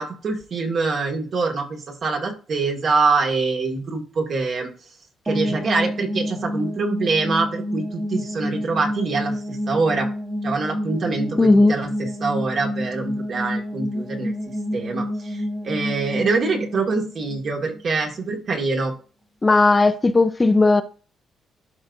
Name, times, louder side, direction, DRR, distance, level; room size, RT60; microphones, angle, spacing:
voice 1, 0.0-4.7 5.3-10.1 10.4-14.3 14.7-18.9, right 4 dB, 55° right, 1.9 m, -24 dB
sound 1, 5.3-18.1, equal, 15° right, 1.2 m, -29 dB
voice 2, 11.4-11.8 19.4-20.8, left 3 dB, 20° left, 0.5 m, -16 dB
12.0 x 4.0 x 2.6 m
cardioid pair, 90°, 0 cm